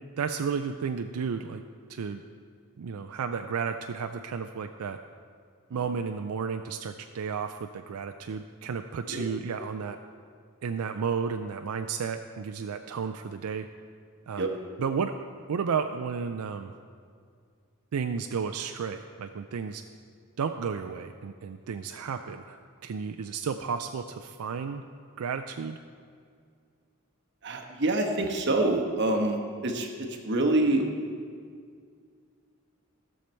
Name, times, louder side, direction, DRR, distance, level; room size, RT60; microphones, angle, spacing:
voice 1, 0.2-1.6 1.9-2.2 2.8-5.0 5.7-10.0 10.6-13.7 14.3-14.5 14.8-15.1 15.5-16.7 17.9-19.8 20.4-22.6 22.8-24.8 25.2-25.8, right 6 dB, 90° right, 6 dB, 0.4 m, -32 dB
voice 2, 27.4-30.9, right 2 dB, 55° right, 2 dB, 1.1 m, -26 dB
15.5 x 6.6 x 4.4 m, 2.2 s
head